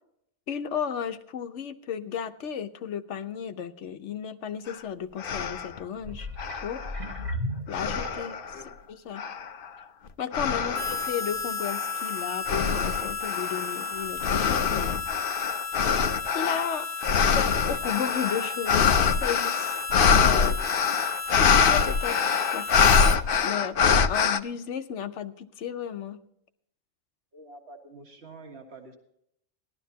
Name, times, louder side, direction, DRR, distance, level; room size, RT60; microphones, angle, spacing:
voice 1, 0.5-6.8 7.7-8.4 8.9-9.2 10.2-15.0 16.3-16.9 17.3-19.8 20.1-20.7 21.4-22.2 22.5-23.2 23.4-26.2, left 8 dB, 90° left, 9 dB, 1.2 m, -34 dB
sound 1, 4.7-4.8 5.2-5.8 6.4-7.3 7.7-8.6 9.2-9.7 10.3-11.1 11.6-24.4, left 6 dB, 55° left, 0.8 m, -24 dB
sound 2, 6.0-8.6 9.2-9.3, equal, 40° right, 1.4 m, -35 dB
Harmonica, 10.7-23.2, left 4 dB, 15° left, 0.9 m, -33 dB
voice 2, 27.3-29.0, right 1 dB, 65° right, 2 dB, 2.0 m, -47 dB
18.5 x 12.5 x 2.8 m, 0.73 s
omnidirectional pair, 1.2 m